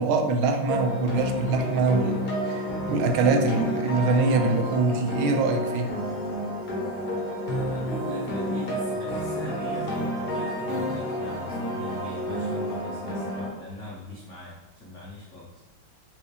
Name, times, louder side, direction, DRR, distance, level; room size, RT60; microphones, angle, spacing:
voice 1, 0.0-5.9, right 3 dB, 80° right, 4 dB, 1.4 m, -24 dB
sound 1, 0.7-13.5, equal, 45° left, 0.8 m, -31 dB
sound 2, 1.6-12.8, left 2 dB, 50° right, 0.7 m, -36 dB
voice 2, 7.5-15.6, left 1 dB, 80° left, -5 dB, 0.6 m, -41 dB
4.6 x 3.1 x 3.3 m, 1.1 s
omnidirectional pair, 2.3 m